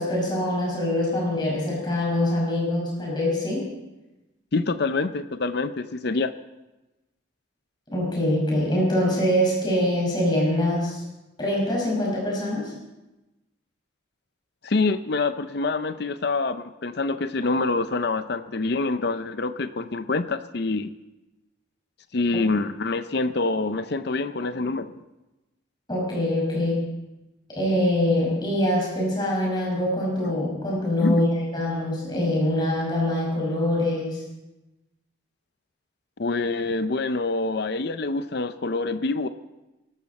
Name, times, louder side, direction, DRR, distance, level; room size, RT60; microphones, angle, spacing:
voice 1, 0.0-3.7 7.9-11.0 11.4-12.7 25.9-26.9 27.5-34.2, left 1 dB, 20° left, -4 dB, 5.7 m, -24 dB
voice 2, 4.5-6.3 14.6-20.9 22.1-25.0 31.0-31.3 36.2-39.3, left 3 dB, 55° left, 11 dB, 0.6 m, -26 dB
23.5 x 13.0 x 4.2 m, 1.0 s
head